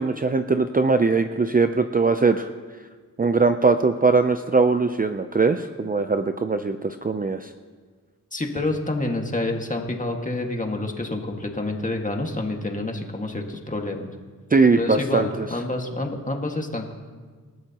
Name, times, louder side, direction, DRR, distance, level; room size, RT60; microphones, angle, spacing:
voice 1, 0.0-2.5 3.2-7.5 14.5-15.5, right 4 dB, 25° right, 8 dB, 0.5 m, -21 dB
voice 2, 8.3-14.1 14.8-16.9, left 2 dB, 25° left, 2 dB, 1.9 m, -28 dB
27.5 x 13.5 x 3.0 m, 1.5 s
wide cardioid pair, 95°, 34 cm